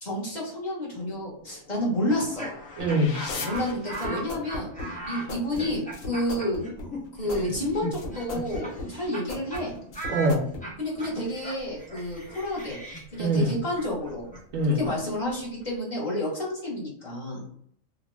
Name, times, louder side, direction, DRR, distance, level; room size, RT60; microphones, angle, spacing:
voice 1, 0.0-2.5 3.4-6.6 7.2-9.7 10.8-12.8 13.1-14.3 14.7-17.4, left 1 dB, 35° left, -5 dB, 1.1 m, -30 dB
sound 1, 1.1-4.5, left 4 dB, 60° left, 0.7 m, -41 dB
Laughter, 2.1-9.2 9.5-9.6 9.9-15.7, right 1 dB, 10° left, 0.5 m, -39 dB
sound 2, 2.8-10.7, left 1 dB, 80° left, 1.2 m, -38 dB
voice 2, 2.8-3.2 10.1-10.5 13.2-13.6 14.5-14.8, equal, 80° right, 0 dB, 1.2 m, -23 dB
2.9 x 2.2 x 3.1 m, 0.65 s
omnidirectional pair, 1.4 m